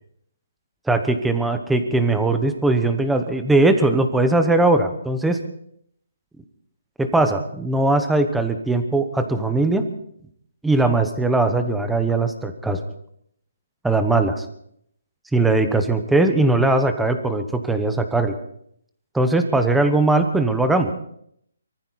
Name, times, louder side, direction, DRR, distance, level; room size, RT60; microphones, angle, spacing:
voice 1, 0.9-5.4 7.0-9.8 10.6-12.8 13.8-14.4 15.3-18.3 19.1-20.9, right 2 dB, 5° right, 7 dB, 1.0 m, -20 dB
23.5 x 14.5 x 4.1 m, 0.70 s
hypercardioid pair, 165°, 0 cm